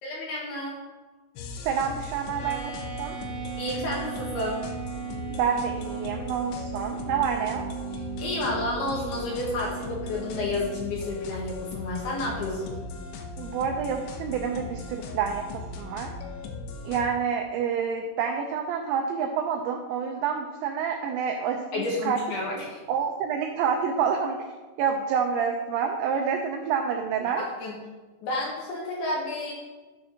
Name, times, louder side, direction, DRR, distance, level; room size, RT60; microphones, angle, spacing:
voice 1, 0.0-0.8 3.6-4.6 7.9-12.8 21.7-22.8 27.4-27.8 28.2-29.5, left 2 dB, 65° left, -4 dB, 2.8 m, -31 dB
sound 1, 1.4-17.1, left 3 dB, 85° left, 2.3 m, -38 dB
voice 2, 1.6-2.7 3.0-3.2 5.4-7.7 13.4-15.4 15.8-16.1 16.8-22.2 22.9-24.4 24.8-27.4, right 7 dB, 90° right, 3 dB, 2.6 m, -28 dB
sound 2, 2.4-10.9, right 8 dB, 40° left, 3.5 m, -37 dB
13.5 x 6.9 x 2.8 m, 1.3 s
omnidirectional pair, 5.9 m